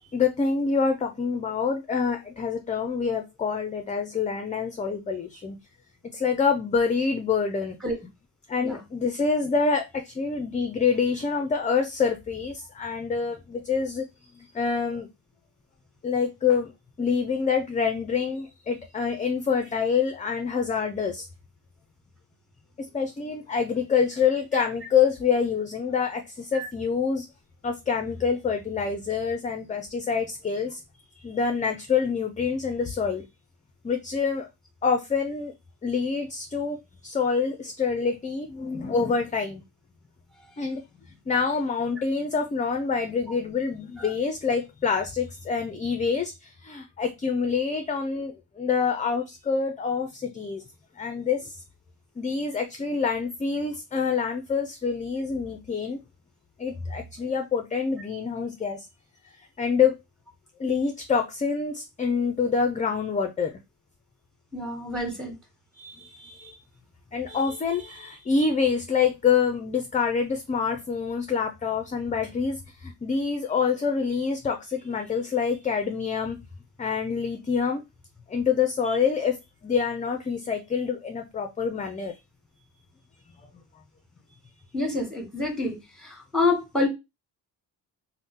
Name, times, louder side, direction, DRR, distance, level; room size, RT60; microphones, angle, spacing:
voice 1, 0.1-5.6 6.1-7.8 8.5-14.0 14.3-15.1 16.0-16.7 17.0-21.3 22.8-27.2 27.6-30.8 31.2-33.2 33.8-34.5 34.8-35.5 35.8-36.8 37.0-39.6 40.6-40.8 41.3-50.6 51.0-51.6 52.2-56.0 56.6-58.9 59.6-59.9 60.6-63.5 65.7-66.6 67.1-76.4 76.8-77.8 78.3-79.4 79.6-82.1, left 5 dB, 20° left, 0.4 m, -26 dB
voice 2, 64.5-65.3 84.7-85.8 86.0-86.9, left 2 dB, ahead, 1.3 m, -27 dB
2.6 x 2.1 x 3.6 m
cardioid pair, 80°, 44 cm